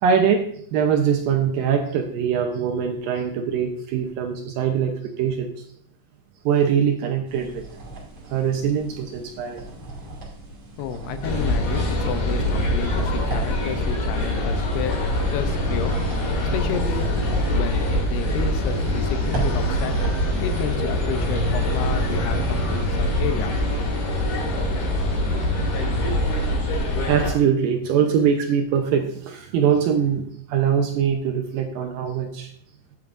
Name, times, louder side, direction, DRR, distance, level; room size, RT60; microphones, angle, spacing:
voice 1, 0.0-5.6 6.5-7.7 8.3-9.6 25.6-25.9 27.1-32.5, right 7 dB, 75° right, 3 dB, 2.2 m, -22 dB
sound 1, 7.3-20.3, right 2 dB, 40° right, 3.3 m, -37 dB
voice 2, 10.8-15.0 15.3-15.9 16.5-17.2 17.5-20.1 20.4-23.6, left 9 dB, 80° left, 9 dB, 2.7 m, -31 dB
sound 2, 11.2-27.3, left 1 dB, 65° left, 4.4 m, -23 dB
12.0 x 8.7 x 2.5 m, 0.62 s
omnidirectional pair, 4.7 m